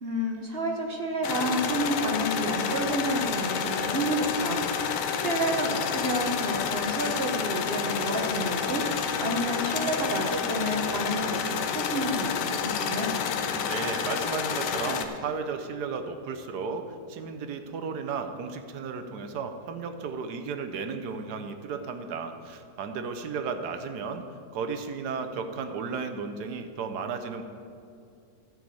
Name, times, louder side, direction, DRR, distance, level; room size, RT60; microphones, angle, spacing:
voice 1, 0.0-8.8 9.2-13.2, right 1 dB, 40° right, 1 dB, 1.1 m, -30 dB
sound 1, 1.2-15.1, left 7 dB, 90° left, 1.4 m, -29 dB
voice 2, 13.5-24.2 24.5-27.4, right 5 dB, 75° right, 7 dB, 1.3 m, -34 dB
13.0 x 4.7 x 8.5 m, 2.4 s
omnidirectional pair, 1.8 m